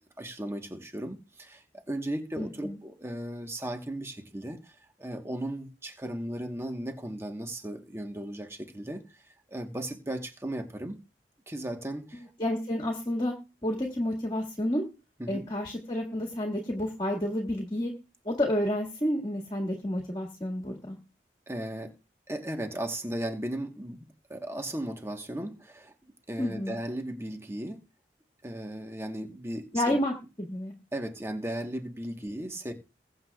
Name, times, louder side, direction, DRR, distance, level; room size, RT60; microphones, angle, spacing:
voice 1, 0.2-9.1 9.5-11.0 11.5-12.2 15.2-15.5 21.5-21.9 22.3-25.9 26.3-27.8 28.4-30.0 30.9-32.7, right 1 dB, 15° right, 1.2 m, -36 dB
voice 2, 2.4-2.8 12.2-13.3 13.6-14.8 15.3-17.9 18.3-21.0 26.4-26.8 29.7-30.7 32.3-32.4, left 1 dB, 25° left, 1.8 m, -30 dB
22.0 x 7.7 x 2.3 m
head